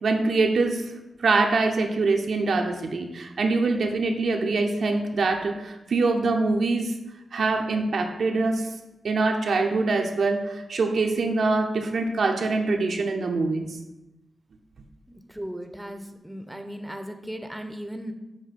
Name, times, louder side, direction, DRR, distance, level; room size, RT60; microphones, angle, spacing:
voice 1, 0.0-0.9 1.2-6.9 7.3-8.7 9.0-13.8, right 3 dB, 75° right, 3 dB, 0.7 m, -24 dB
voice 2, 15.1-18.1, equal, 5° right, 6 dB, 0.6 m, -37 dB
7.5 x 2.7 x 5.1 m, 0.99 s
cardioid pair, 65°, 0 cm